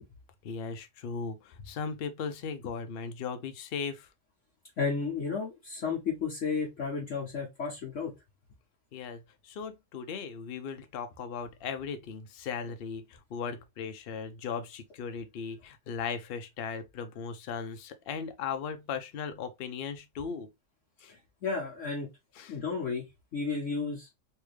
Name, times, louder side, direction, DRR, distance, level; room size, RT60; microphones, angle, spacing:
voice 1, 0.4-4.1 8.9-20.5 21.0-21.1 22.4-22.6, left 6 dB, 75° left, 0.5 m, -37 dB
voice 2, 4.8-8.1 21.4-22.1 22.5-23.0 23.3-24.1, left 5 dB, 55° left, 1.2 m, -32 dB
3.3 x 2.7 x 3.1 m
omnidirectional pair, 1.7 m